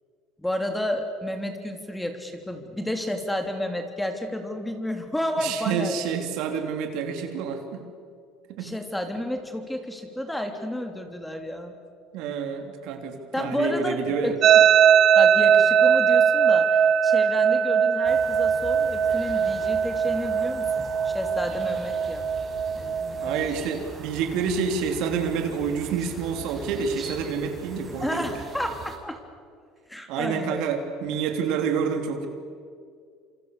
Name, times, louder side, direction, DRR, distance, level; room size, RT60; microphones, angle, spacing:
voice 1, 0.4-6.1 8.6-11.8 13.3-14.0 14.2-14.6 15.1-22.3 22.8-23.5 28.0-29.2 29.9-30.7, left 1 dB, 5° left, 5 dB, 3.2 m, -31 dB
voice 2, 5.4-7.9 8.5-8.7 12.1-14.4 23.2-28.3 30.1-32.3, right 6 dB, 70° right, 5 dB, 3.4 m, -28 dB
sound 1, 14.4-23.5, right 8 dB, 50° right, 1.0 m, -20 dB
sound 2, 18.0-29.0, right 4 dB, 30° right, 6.2 m, -42 dB
27.5 x 27.0 x 6.8 m, 2.2 s
supercardioid pair, 110°, 0 cm